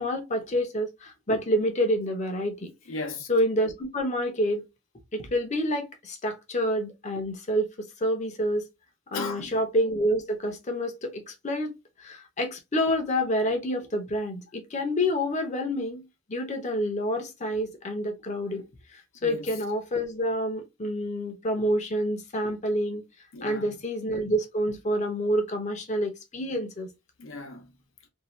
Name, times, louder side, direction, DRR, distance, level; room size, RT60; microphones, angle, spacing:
voice 1, 0.0-2.7 3.3-4.6 5.1-8.6 9.1-18.6 18.9-23.0 23.4-26.9, equal, 35° left, 0.7 m, -28 dB
voice 2, 2.9-3.3 9.1-9.6 19.2-19.5 23.3-23.7 27.2-27.8, left 3 dB, 75° left, 0.7 m, -37 dB
2.7 x 2.2 x 3.0 m
head